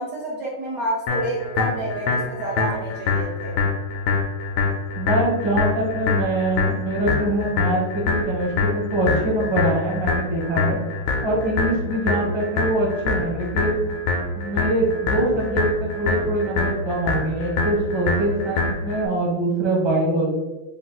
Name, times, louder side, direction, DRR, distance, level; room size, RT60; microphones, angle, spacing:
voice 1, 0.0-3.6, right 2 dB, 65° right, -4 dB, 0.9 m, -29 dB
sound 1, 1.1-19.1, left 4 dB, 80° left, 1.5 m, -25 dB
voice 2, 5.0-10.8 11.2-13.9 14.3-20.3, right 1 dB, 35° right, -3 dB, 0.4 m, -23 dB
4.2 x 2.4 x 3.8 m, 1.1 s
omnidirectional pair, 2.4 m